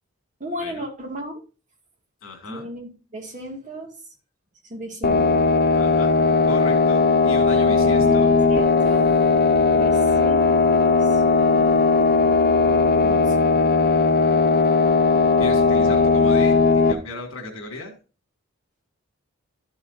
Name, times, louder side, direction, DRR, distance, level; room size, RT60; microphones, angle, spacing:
voice 1, 0.4-1.4 2.5-3.9 4.7-5.3 7.8-9.1 9.7-11.2 13.0-13.5, equal, 35° right, 1 dB, 2.4 m, -35 dB
voice 2, 2.2-2.7 5.8-6.1 6.4-8.3 15.4-18.0, left 2 dB, 65° left, 3 dB, 3.0 m, -36 dB
sound 1, 5.0-16.9, left 4 dB, 45° left, 0.8 m, -18 dB
13.0 x 7.0 x 2.8 m, 0.34 s
head